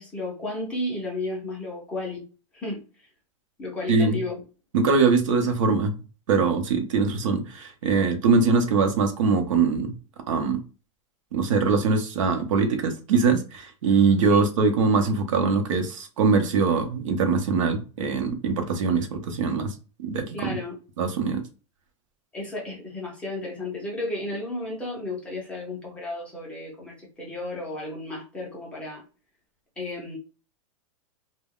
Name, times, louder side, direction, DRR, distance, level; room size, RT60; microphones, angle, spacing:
voice 1, 0.0-2.3 2.5-2.8 3.6-4.4 14.3-14.4 20.3-20.8 22.3-29.0 29.8-30.2, left 2 dB, 5° left, 0.5 m, -33 dB
voice 2, 4.7-5.9 6.3-9.9 10.3-10.6 11.3-19.7 20.1-20.6 21.0-21.4, right 4 dB, 70° right, 0.6 m, -22 dB
2.3 x 2.0 x 3.4 m
supercardioid pair, 170°, 17 cm